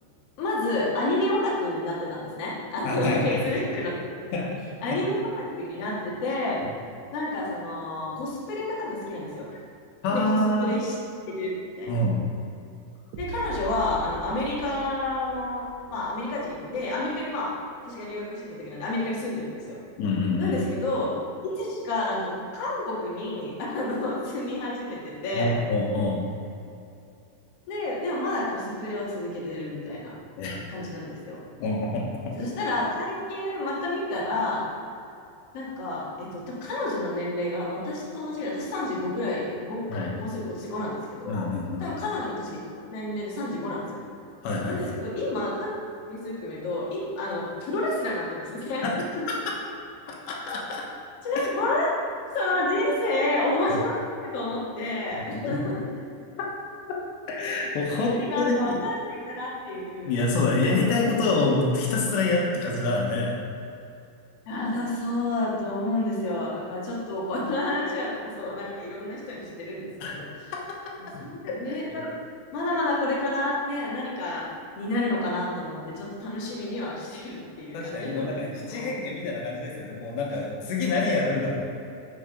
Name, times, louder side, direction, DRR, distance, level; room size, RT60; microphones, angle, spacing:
voice 1, 0.4-3.9 4.3-4.4 4.8-6.6 7.1-9.5 10.1-10.9 11.3-11.9 13.2-17.5 17.8-19.8 20.4-21.2 21.5-25.6 27.7-30.1 30.6-31.4 32.3-34.6 35.5-41.5 41.8-42.5 42.9-43.8 44.6-45.7 46.1-48.8 51.2-51.9 52.3-53.9 54.2-55.8 58.0-60.2 60.6-61.0 64.5-70.3 71.0-72.1 72.5-74.5 74.8-78.9, left 2 dB, 45° left, -6 dB, 2.3 m, -30 dB
voice 2, 2.8-3.5 4.3-4.4 10.0-10.7 11.9-12.2 20.0-20.6 25.3-26.2 30.4-30.6 31.6-32.3 39.9-40.1 41.3-41.9 44.4-44.9 48.8-48.9 49.3-49.6 50.2-50.8 51.4-51.5 53.7-53.8 55.3-55.7 56.4-56.5 56.9-57.0 57.3-58.8 60.1-63.4 70.0-70.1 70.5-71.0 71.4-72.0 77.7-81.7, left 2 dB, 80° left, -2 dB, 3.4 m, -26 dB
sound 1, 13.1-17.1, right 3 dB, 85° right, 3.0 m, -41 dB
11.0 x 5.6 x 5.1 m, 2.7 s
omnidirectional pair, 5.1 m